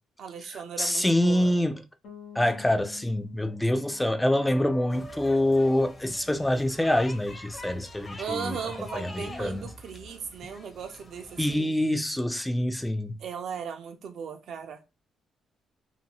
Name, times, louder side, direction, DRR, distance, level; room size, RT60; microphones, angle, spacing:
voice 1, 0.2-1.6 8.2-11.7 13.2-14.8, right 7 dB, 70° right, 0.6 m, -37 dB
voice 2, 0.8-1.8 2.3-8.6 8.9-9.7 11.4-13.2, left 1 dB, 10° left, 0.3 m, -25 dB
Bass guitar, 2.0-5.9, left 8 dB, 75° left, 0.8 m, -50 dB
sound 1, 4.5-7.3, right 2 dB, 45° left, 1.0 m, -47 dB
sound 2, 4.9-11.6, left 2 dB, 25° left, 0.8 m, -45 dB
2.6 x 2.2 x 2.8 m
cardioid pair, 90°, 0 cm